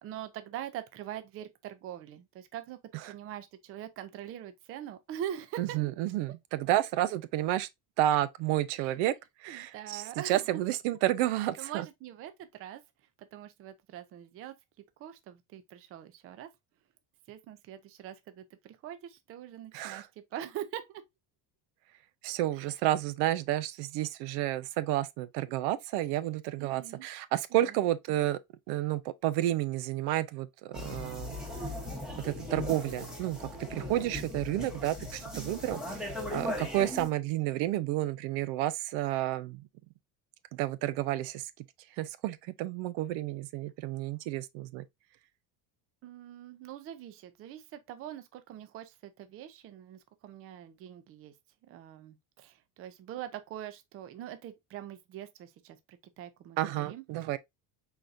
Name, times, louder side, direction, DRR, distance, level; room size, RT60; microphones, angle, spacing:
voice 1, 0.0-2.8 3.1-5.8 8.7-8.9 9.5-10.6 11.6-12.8 13.2-14.6 15.0-16.5 17.3-21.0 22.5-22.7 26.6-27.1 27.6-27.8 35.3-35.6 46.0-51.3 51.7-57.0, right 11 dB, 35° right, 0.5 m, -43 dB
voice 2, 5.6-7.7 8.0-9.1 9.4-11.8 19.7-20.1 22.2-28.4 28.7-31.4 32.2-39.6 40.5-41.5 42.0-44.8 56.6-57.4, right 14 dB, 75° right, 0.6 m, -31 dB
sound 1, 30.7-37.1, left 1 dB, ahead, 0.9 m, -38 dB
4.5 x 4.0 x 2.5 m
cardioid pair, 175°, 41 cm